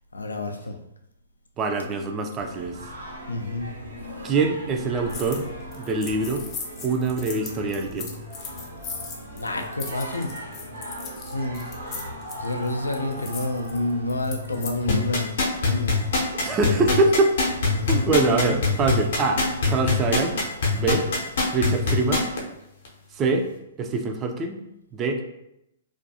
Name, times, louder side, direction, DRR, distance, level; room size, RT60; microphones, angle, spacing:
voice 1, 0.1-0.8 3.3-3.7 9.3-10.3 11.3-11.6 12.4-15.3 15.6-16.0 17.7-18.1 18.4-18.6 19.9-20.0, left 2 dB, 85° left, 5 dB, 0.4 m, -28 dB
voice 2, 1.6-2.8 4.2-5.5 5.7-6.4 6.8-8.1 16.4-17.3 17.9-20.4 20.7-21.0 21.5-22.2 23.1-23.5 23.8-24.6 24.9-25.2, right 3 dB, 25° right, 5 dB, 0.4 m, -24 dB
Singing, 2.4-20.6, equal, 80° right, 0.8 m, -39 dB
sound 1, 5.1-5.4 5.7-14.8, left 5 dB, 30° left, 0.5 m, -38 dB
sound 2, 14.9-22.4 22.8-22.9, left 3 dB, 60° left, 0.7 m, -22 dB
2.4 x 2.2 x 2.7 m, 0.84 s
figure-of-eight pair, 120°, 0 cm